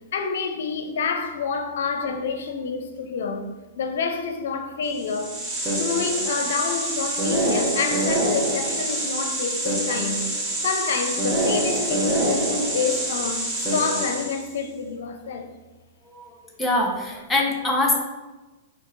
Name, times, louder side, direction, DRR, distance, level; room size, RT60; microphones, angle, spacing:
voice 1, 0.1-5.4 5.7-10.3 10.6-15.5, left 5 dB, 70° left, 0.5 m, -28 dB
sound 1, 5.0-14.5, right 1 dB, 30° right, 1.3 m, -25 dB
voice 2, 16.6-18.0, left 2 dB, 10° left, 0.9 m, -23 dB
4.3 x 2.8 x 3.8 m
hypercardioid pair, 110°, 0 cm